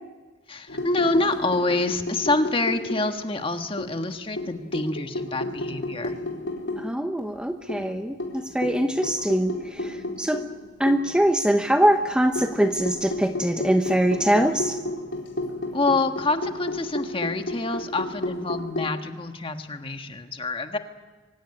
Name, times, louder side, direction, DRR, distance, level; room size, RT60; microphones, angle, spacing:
voice 1, 0.5-6.2 15.7-20.8, left 2 dB, 30° left, 6 dB, 1.5 m, -27 dB
sound 1, 0.7-3.4 3.8-6.9 7.2-7.3 7.7-11.2 11.8-19.0, left 1 dB, 90° left, 4.2 m, -32 dB
voice 2, 6.8-10.4 10.8-14.8, equal, 5° right, 6 dB, 0.8 m, -23 dB
24.5 x 16.5 x 9.8 m, 1.3 s
head